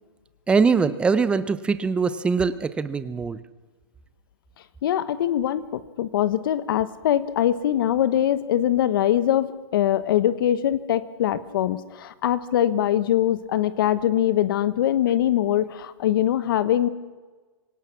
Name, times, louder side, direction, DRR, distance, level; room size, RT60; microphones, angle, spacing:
voice 1, 0.5-3.4, right 5 dB, 5° right, 14 dB, 0.6 m, -22 dB
voice 2, 4.8-16.9, left 11 dB, 55° left, 14 dB, 1.2 m, -22 dB
25.0 x 17.5 x 6.0 m, 1.3 s
hypercardioid pair, 150°, 14 cm